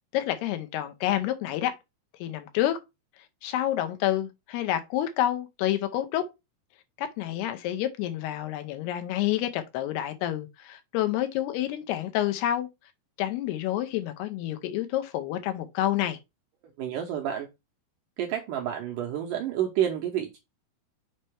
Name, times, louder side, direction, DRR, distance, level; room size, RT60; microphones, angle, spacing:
voice 1, 0.1-1.7 2.2-2.8 3.4-6.2 7.0-12.7 13.2-16.2, left 12 dB, 90° left, 2.8 m, -28 dB
voice 2, 16.8-17.5 18.2-20.4, right 10 dB, 80° right, 2.0 m, -29 dB
6.6 x 4.3 x 3.3 m
omnidirectional pair, 4.6 m